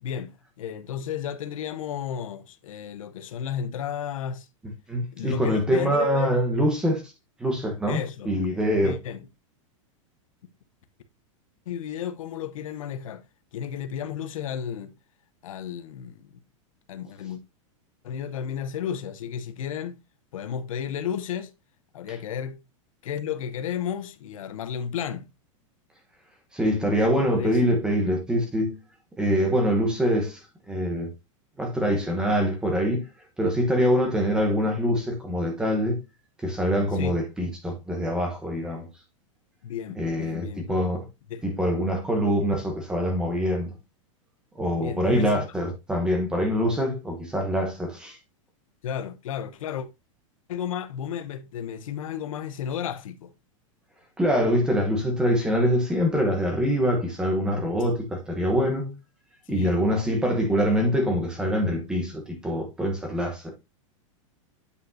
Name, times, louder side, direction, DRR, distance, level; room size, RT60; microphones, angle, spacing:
voice 1, 0.0-4.5 5.1-6.4 7.9-8.3 8.8-9.3 11.7-13.2 13.5-14.9 15.4-16.4 16.9-17.4 18.0-20.0 20.3-21.5 21.9-22.6 23.0-25.3 27.0-27.7 36.9-37.2 39.6-40.8 41.3-41.4 44.8-45.5 48.8-49.9 50.5-53.3 59.5-59.7, left 8 dB, 85° left, 0.9 m, -33 dB
voice 2, 4.9-7.0 7.4-8.9 26.5-28.8 29.2-31.1 31.6-33.0 33.4-36.0 36.4-38.9 40.0-41.0 41.4-43.7 44.5-48.2 54.2-58.9 59.5-63.5, equal, 5° right, 1.0 m, -24 dB
8.2 x 5.2 x 2.6 m
supercardioid pair, 175°, 17 cm